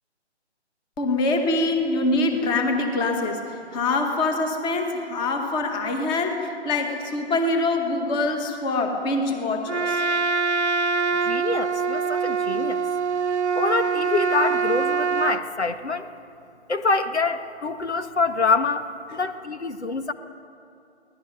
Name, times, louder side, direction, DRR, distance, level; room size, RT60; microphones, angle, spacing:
voice 1, 1.0-10.0 19.1-19.2, left 2 dB, 15° left, 4 dB, 1.9 m, -24 dB
Trumpet, 9.7-15.4, right 5 dB, 80° right, 1.2 m, -24 dB
voice 2, 11.2-12.8 13.5-16.1 16.7-20.1, left 4 dB, 75° left, 8 dB, 1.8 m, -25 dB
24.0 x 18.0 x 9.3 m, 2.6 s
figure-of-eight pair, 145°, 34 cm